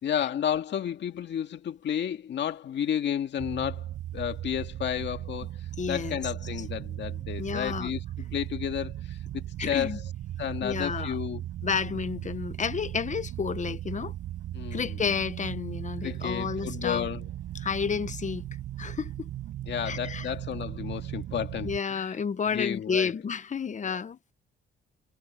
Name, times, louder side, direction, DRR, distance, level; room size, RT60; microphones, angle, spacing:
voice 1, 0.0-10.0 10.4-11.4 14.5-15.0 16.0-17.3 19.7-22.2 22.5-23.1 23.8-24.0, left 9 dB, 65° left, 1.9 m, -32 dB
sound 1, 3.4-21.8, right 13 dB, 80° right, 7.3 m, -37 dB
voice 2, 5.8-6.1 7.4-7.9 9.6-10.0 10.6-11.2 11.6-14.1 14.7-17.0 17.5-18.4 18.8-19.3 19.9-20.3 21.6-24.3, left 6 dB, 40° left, 1.1 m, -31 dB
cardioid pair, 90°, 20 cm